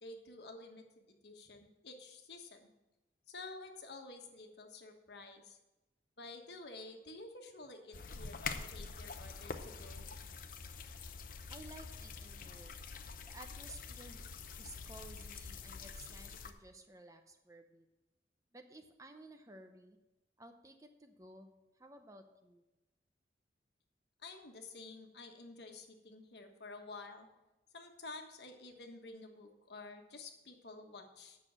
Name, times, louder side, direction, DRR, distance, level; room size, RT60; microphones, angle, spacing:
voice 1, 0.0-2.7 3.3-5.6 6.2-10.1 24.2-27.3 27.7-31.4, left 3 dB, 70° left, 4 dB, 1.3 m, -51 dB
sound 1, 7.9-16.5, left 5 dB, 50° left, 0.7 m, -46 dB
voice 2, 11.5-12.8 13.2-14.2 14.6-17.9 18.5-20.0 20.4-21.5 21.8-22.6, right 2 dB, 20° right, 6 dB, 0.7 m, -55 dB
8.8 x 6.3 x 7.4 m, 0.99 s
head